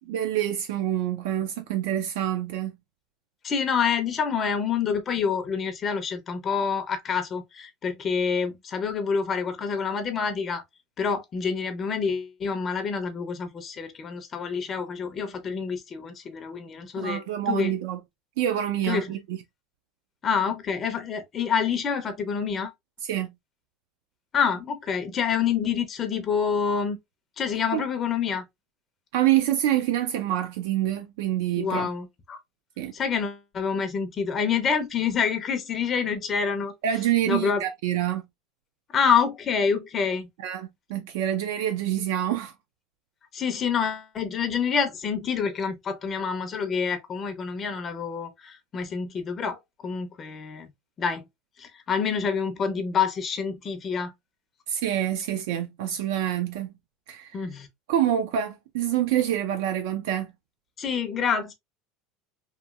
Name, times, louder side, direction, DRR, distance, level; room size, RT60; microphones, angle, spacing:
voice 1, 0.1-2.7 17.0-18.0 18.4-19.4 23.0-23.3 27.7-27.8 29.1-31.9 32.8-32.9 36.8-38.2 40.4-42.5 54.7-56.7 57.1-57.4 57.9-60.3, right 11 dB, 80° right, 0.4 m, -26 dB
voice 2, 3.4-10.6 11.0-17.7 18.9-19.1 20.2-22.7 24.3-27.0 27.4-28.4 31.6-32.4 32.9-36.7 37.3-37.6 38.9-40.3 43.3-50.7 51.0-51.2 51.6-54.1 57.3-57.7 60.8-61.5, left 6 dB, 25° left, 0.4 m, -27 dB
2.9 x 2.7 x 2.3 m
cardioid pair, 160°, 0 cm